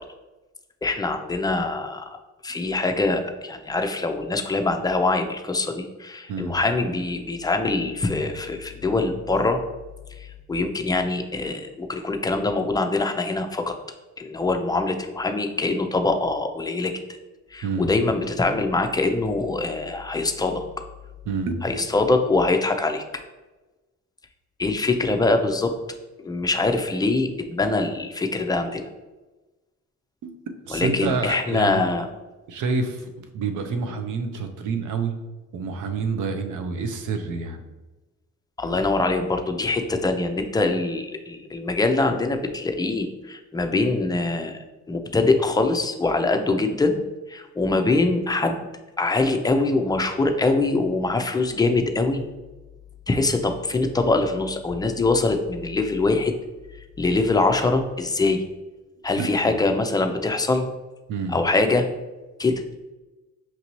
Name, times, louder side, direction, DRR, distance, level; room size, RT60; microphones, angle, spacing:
voice 1, 0.8-2.0 2.4-9.6 10.2-13.7 14.2-16.9 17.5-20.6 21.6-23.0 24.6-25.7 26.2-28.9 30.7-32.1 38.6-44.6 44.9-47.0 47.3-48.6 49.0-52.2 53.1-56.3 57.0-58.4 59.0-60.7 61.3-61.9 62.4-62.6, left 3 dB, 15° left, 5 dB, 0.4 m, -23 dB
voice 2, 30.2-32.0 32.5-35.1 35.5-37.6 59.2-59.3 61.1-61.4, right 4 dB, 80° right, 6 dB, 0.6 m, -28 dB
5.9 x 2.7 x 3.0 m, 1.1 s
cardioid pair, 90°, 30 cm